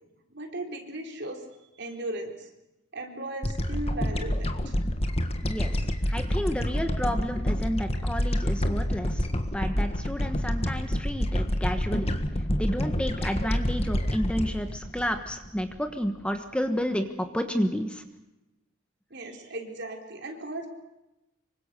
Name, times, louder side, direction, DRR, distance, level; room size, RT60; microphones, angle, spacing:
voice 1, 0.3-1.4 1.8-2.5 2.9-4.7 19.1-20.7, right 2 dB, 55° right, 3 dB, 3.9 m, -37 dB
sound 1, 3.4-15.9, equal, 30° left, 1.6 m, -28 dB
voice 2, 5.4-5.8 6.1-12.1 12.6-18.0, equal, 5° left, 7 dB, 1.3 m, -31 dB
25.5 x 24.0 x 6.8 m, 0.93 s
head